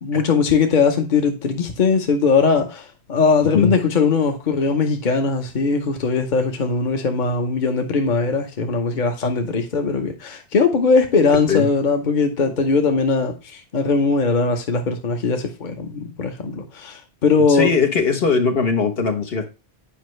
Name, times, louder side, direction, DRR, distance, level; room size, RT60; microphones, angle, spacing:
voice 1, 0.0-17.7, left 4 dB, 50° left, 1.0 m, -20 dB
voice 2, 17.5-19.5, left 5 dB, 70° left, 1.3 m, -19 dB
8.6 x 5.2 x 3.2 m
omnidirectional pair, 1.0 m